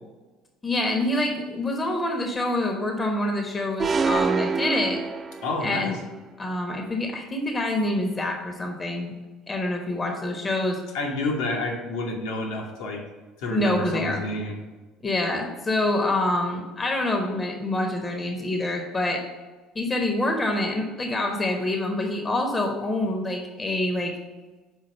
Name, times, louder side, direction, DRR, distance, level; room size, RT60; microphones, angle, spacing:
voice 1, 0.6-5.0 5.6-6.0 6.4-9.1 9.5-10.8 13.5-14.2 15.0-19.2 19.7-24.1, left 1 dB, 25° left, 2 dB, 1.2 m, -26 dB
sound 1, 3.8-5.8, right 4 dB, 30° right, 0.4 m, -26 dB
voice 2, 5.4-6.0 10.9-13.0 13.4-14.6, left 2 dB, 65° left, 1 dB, 1.3 m, -29 dB
5.6 x 4.7 x 5.3 m, 1.2 s
figure-of-eight pair, 60°, 0 cm